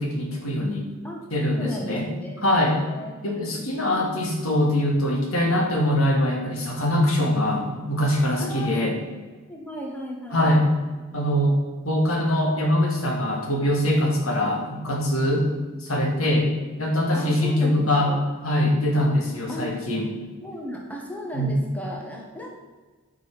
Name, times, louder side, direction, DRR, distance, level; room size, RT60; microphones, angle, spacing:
voice 1, 0.0-0.9 1.3-2.1 2.4-2.8 3.2-8.9 10.3-10.6 11.1-11.6 11.8-15.5 15.8-16.5 16.8-18.1 18.4-20.1 21.3-21.5, left 1 dB, 85° left, 0 dB, 2.2 m, -23 dB
voice 2, 1.6-2.5 2.8-3.1 3.5-3.7 8.4-8.9 9.5-10.5 14.2-14.4 17.1-18.2 19.5-19.7 20.4-22.5, equal, 5° left, -1 dB, 1.6 m, -35 dB
9.4 x 6.2 x 6.2 m, 1.3 s
head